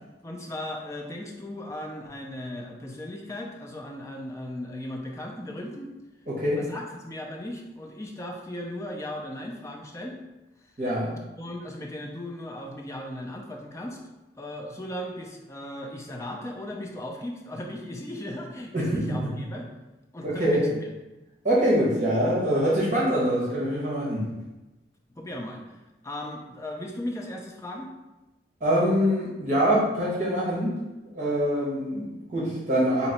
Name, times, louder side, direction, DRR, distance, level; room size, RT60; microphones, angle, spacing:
voice 1, 0.2-5.9 6.6-10.2 10.6-10.7 11.4-14.0 14.4-19.7 20.1-20.9 25.1-25.6 26.0-27.9, left 1 dB, 15° left, 1 dB, 0.5 m, -37 dB
voice 2, 6.3-6.6 10.8-11.1 18.7-18.9 20.2-20.6 21.4-24.3 28.6-30.7 31.1-33.1, equal, 40° right, -7 dB, 1.1 m, -24 dB
3.1 x 2.9 x 4.2 m, 1.0 s
head